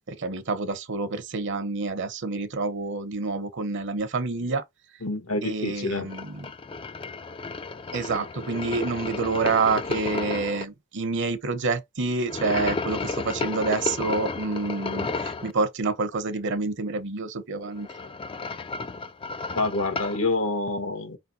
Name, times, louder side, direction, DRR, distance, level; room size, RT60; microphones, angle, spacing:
voice 1, 0.1-4.6 5.4-6.5 7.9-17.9, right 3 dB, 60° right, 0.9 m, -28 dB
voice 2, 5.0-6.1 19.5-21.2, left 2 dB, 80° left, 1.3 m, -27 dB
sound 1, 6.1-10.6 12.3-15.5 17.6-20.2, left 3 dB, 25° left, 0.4 m, -32 dB
5.3 x 3.4 x 2.7 m
head